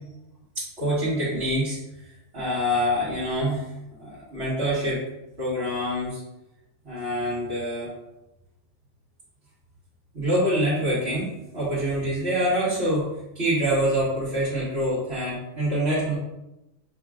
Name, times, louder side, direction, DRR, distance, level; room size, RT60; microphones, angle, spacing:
voice 1, 0.6-1.8 2.3-3.6 4.0-5.0 5.4-6.2 6.8-7.9 10.1-13.1 13.3-16.2, equal, 50° right, -12 dB, 2.1 m, -25 dB
6.7 x 2.9 x 2.4 m, 0.94 s
omnidirectional pair, 1.3 m